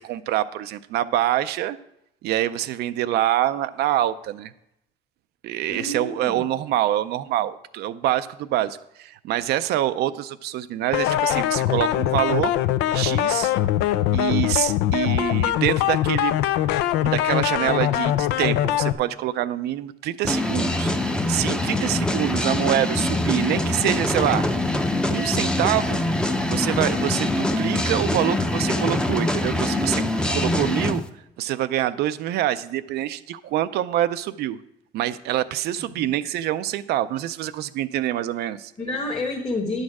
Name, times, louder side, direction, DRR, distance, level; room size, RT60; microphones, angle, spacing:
voice 1, 0.0-1.8 2.2-4.5 5.4-12.5 12.9-13.5 14.1-16.3 17.0-24.4 25.1-26.0 26.5-31.0 31.4-34.6 34.9-38.7, right 13 dB, 75° right, 12 dB, 0.4 m, -25 dB
voice 2, 5.7-6.4 9.4-9.5 35.9-36.1 38.8-39.8, left 2 dB, 25° left, 0 dB, 1.2 m, -29 dB
sound 1, 10.9-18.9, left 12 dB, 90° left, 0.4 m, -22 dB
sound 2, 20.2-31.0, left 1 dB, 5° left, 0.6 m, -24 dB
10.5 x 6.5 x 4.7 m, 0.83 s
cardioid pair, 110°, 17 cm